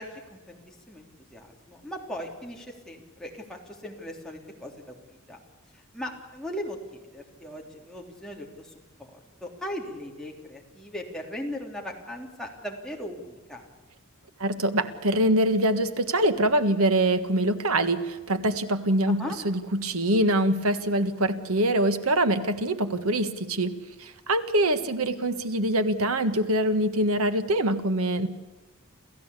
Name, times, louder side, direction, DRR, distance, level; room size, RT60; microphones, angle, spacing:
voice 1, 0.0-5.4 5.9-8.7 9.0-13.7 19.0-19.4, equal, 5° left, -1 dB, 3.3 m, -38 dB
voice 2, 14.4-23.7 24.0-28.3, right 1 dB, 75° right, 10 dB, 1.6 m, -24 dB
28.0 x 15.0 x 8.4 m, 1.3 s
head